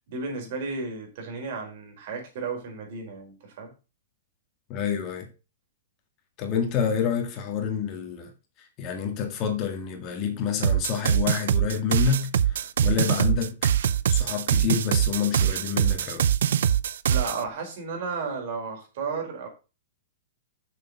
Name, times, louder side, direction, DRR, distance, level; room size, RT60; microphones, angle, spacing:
voice 1, 0.1-3.7 17.1-19.5, right 4 dB, 55° right, 4.5 m, -33 dB
voice 2, 4.7-5.3 6.4-8.3 8.6-13.6 14.1-16.2, left 7 dB, 35° left, 1.9 m, -28 dB
sound 1, 10.6-17.4, right 9 dB, 75° right, 0.5 m, -23 dB
6.8 x 6.7 x 5.3 m
hypercardioid pair, 145°, 0 cm